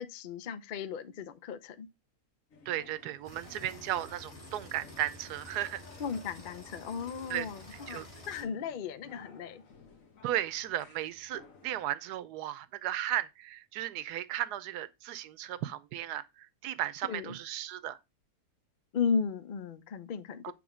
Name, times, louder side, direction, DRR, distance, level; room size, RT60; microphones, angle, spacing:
voice 1, 0.0-1.9 6.0-9.6 17.1-17.3 18.9-20.5, left 6 dB, 75° left, 0.4 m, -35 dB
sound 1, 2.5-11.8, left 5 dB, 55° left, 1.5 m, -57 dB
voice 2, 2.7-5.8 7.3-7.5 7.7-8.1 10.2-18.0 20.4-20.5, right 13 dB, 80° right, 1.1 m, -35 dB
sound 2, 3.2-8.4, left 1 dB, 35° left, 5.1 m, -50 dB
7.7 x 3.4 x 4.9 m
omnidirectional pair, 1.7 m